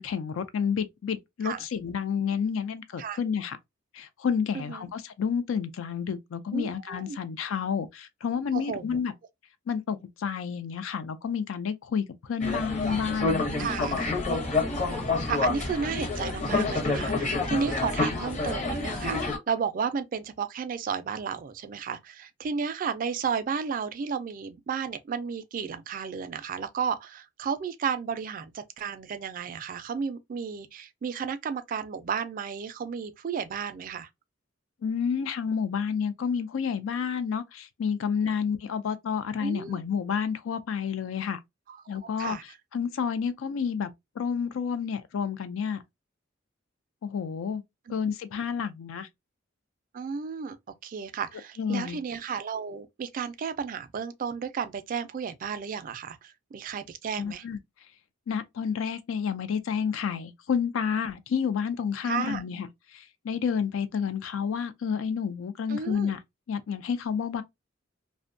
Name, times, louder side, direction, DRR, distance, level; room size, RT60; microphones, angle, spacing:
voice 1, 0.0-3.6 3.9-9.1 9.7-14.0 34.8-41.4 41.9-42.4 42.7-43.9 44.2-45.8 47.0-47.6 47.9-49.1 51.6-52.0 57.2-57.6 58.3-62.7 62.9-66.2 66.5-67.4, left 6 dB, 85° left, 0.4 m, -30 dB
voice 2, 4.5-4.9 6.5-7.2 8.5-9.0 13.6-14.1 15.2-34.1 39.4-39.8 41.7-41.8 42.2-42.4 49.9-50.6 50.8-57.4 62.0-62.4 65.7-66.1, right 6 dB, 45° right, 0.3 m, -33 dB
sound 1, 12.4-19.4, left 3 dB, 35° left, 0.7 m, -28 dB
2.5 x 2.1 x 2.5 m
head